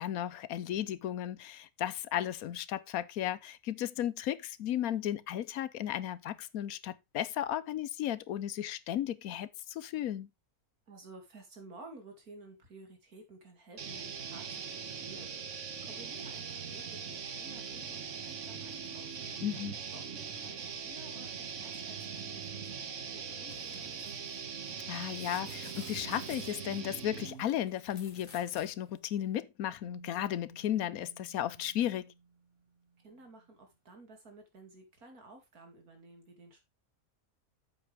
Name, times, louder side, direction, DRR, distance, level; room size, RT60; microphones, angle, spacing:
voice 1, 0.0-10.3 19.4-19.8 24.9-32.1, left 11 dB, 80° left, 1.1 m, -35 dB
voice 2, 10.9-19.4 19.9-24.0 33.0-36.6, right 2 dB, 85° right, 3.0 m, -54 dB
sound 1, 13.8-27.5, right 6 dB, 60° right, 1.4 m, -41 dB
sound 2, 23.5-28.7 29.0-29.1, left 5 dB, 65° left, 2.0 m, -54 dB
sound 3, 29.8-33.7, right 4 dB, 40° right, 1.8 m, -58 dB
8.4 x 7.3 x 3.4 m
omnidirectional pair, 1.5 m